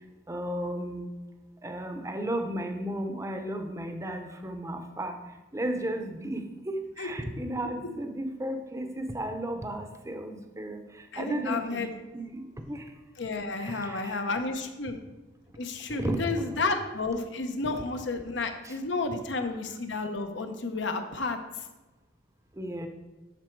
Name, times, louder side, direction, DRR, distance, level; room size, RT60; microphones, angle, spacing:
voice 1, 0.3-1.1 1.6-5.1 5.5-10.8 11.2-11.8 12.1-12.4 12.7-12.8 13.6-14.2 16.0-16.5 17.6-17.8 18.6-18.7 19.0-19.2 22.6-22.9, right 1 dB, 15° right, 6 dB, 0.7 m, -34 dB
voice 2, 11.1-11.9 13.2-15.0 15.6-21.4, left 3 dB, 65° left, 6 dB, 0.8 m, -31 dB
11.5 x 4.2 x 4.5 m, 1.1 s
head